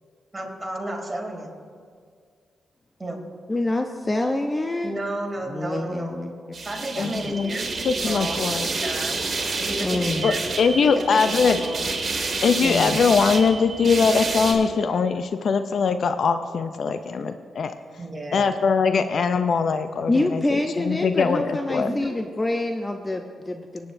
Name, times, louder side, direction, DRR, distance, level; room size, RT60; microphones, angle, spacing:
voice 1, 0.3-1.5 3.0-3.2 4.8-6.2 6.6-8.4 8.6-9.3 9.6-10.4 10.8-11.9 12.6-12.9 18.0-18.5 21.8-22.2, right 1 dB, 20° right, -1 dB, 3.1 m, -33 dB
voice 2, 3.5-5.0 5.5-6.7 7.0-7.2 9.8-10.3 12.6-13.0 20.1-23.9, left 2 dB, 25° left, 4 dB, 0.7 m, -26 dB
sound 1, 6.5-14.5, right 3 dB, 45° right, 1.8 m, -29 dB
voice 3, 7.0-7.5 7.8-8.7 10.2-11.6 12.4-17.7 18.3-21.9, left 5 dB, 65° left, 10 dB, 0.5 m, -22 dB
20.0 x 9.1 x 2.7 m, 2.1 s
cardioid pair, 60°, 0 cm